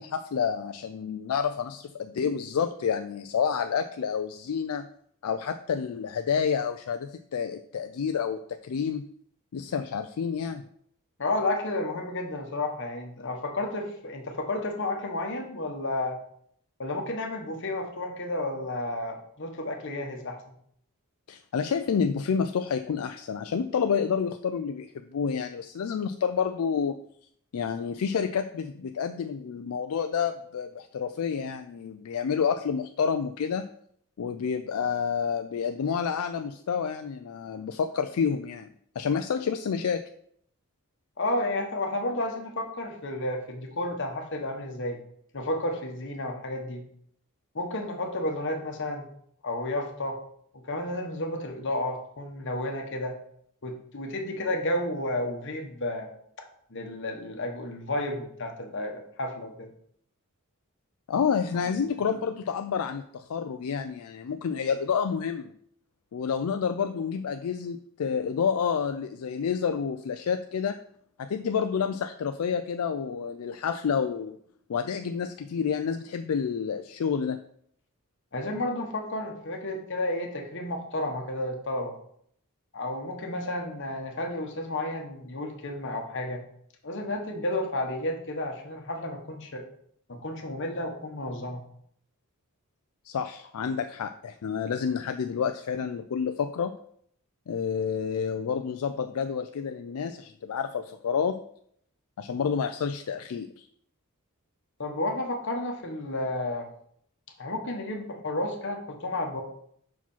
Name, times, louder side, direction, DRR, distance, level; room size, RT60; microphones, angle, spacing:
voice 1, 0.0-4.9 5.2-9.0 9.5-10.6 21.3-27.0 27.5-33.7 34.2-38.7 39.0-40.0 61.1-65.5 66.1-70.8 71.2-74.4 74.7-77.4 93.0-96.7 97.5-101.4 102.2-103.7, left 6 dB, 75° left, 7 dB, 0.4 m, -29 dB
voice 2, 11.2-16.2 16.8-20.4 41.2-45.0 45.3-46.8 47.5-49.1 49.4-50.2 50.6-53.2 53.6-56.1 56.7-59.7 61.5-61.8 78.3-81.9 82.7-86.4 86.8-89.6 90.1-91.6 104.8-106.7 107.4-109.4, left 1 dB, 55° left, 3 dB, 1.2 m, -32 dB
5.8 x 4.9 x 5.5 m, 0.67 s
head